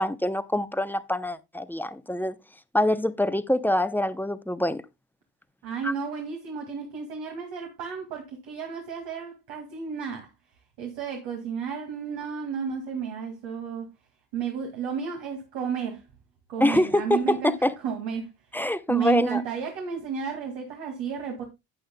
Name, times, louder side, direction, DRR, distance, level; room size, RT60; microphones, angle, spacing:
voice 1, 0.0-2.4 2.7-4.8 5.8-5.9 16.6-17.7 18.5-19.4, left 1 dB, 5° left, 0.7 m, -25 dB
voice 2, 5.6-10.3 10.8-13.9 14.3-16.0 16.5-17.5 17.8-18.3 18.9-21.4, right 7 dB, 75° right, 2.3 m, -32 dB
12.5 x 8.7 x 2.3 m
supercardioid pair, 75°, 44 cm